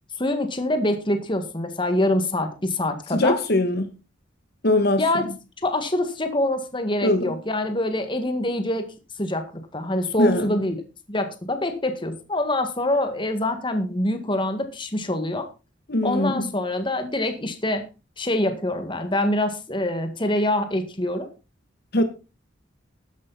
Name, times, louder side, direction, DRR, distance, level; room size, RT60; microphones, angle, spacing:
voice 1, 0.2-3.4 5.0-5.3 5.6-8.9 9.2-10.8 11.1-15.5 16.0-17.9 18.2-21.3, left 1 dB, 25° left, 1.9 m, -25 dB
voice 2, 3.1-3.9 4.6-5.3 7.0-7.3 10.2-10.5 15.9-16.5 21.9-22.0, left 1 dB, 55° left, 1.5 m, -22 dB
13.0 x 10.5 x 4.2 m
head